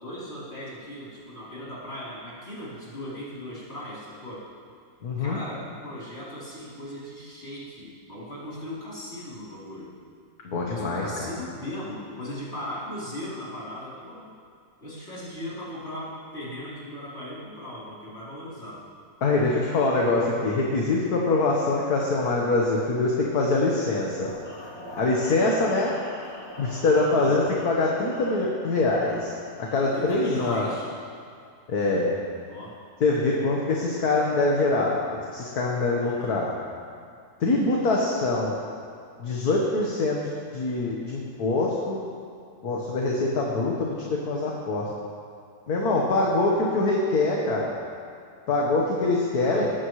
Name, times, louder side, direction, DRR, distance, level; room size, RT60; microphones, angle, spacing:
voice 1, 0.0-4.5 5.2-9.9 10.7-14.3 14.8-18.8 27.1-27.4 29.9-30.9 32.5-32.8 36.0-36.4 38.0-38.3 49.3-49.7, left 1 dB, 35° left, -9 dB, 4.2 m, -38 dB
voice 2, 5.0-5.4 10.4-11.3 19.2-24.3 25.0-26.0 26.6-29.3 29.6-30.7 31.7-32.2 33.0-35.0 35.3-36.5 37.4-38.6 39.2-42.0 42.6-44.9 45.7-47.8 48.5-49.7, left 2 dB, 60° left, -2 dB, 1.8 m, -24 dB
sound 1, 24.2-30.2, equal, 85° left, 3.6 m, -44 dB
19.5 x 14.0 x 3.2 m, 2.3 s
omnidirectional pair, 1.9 m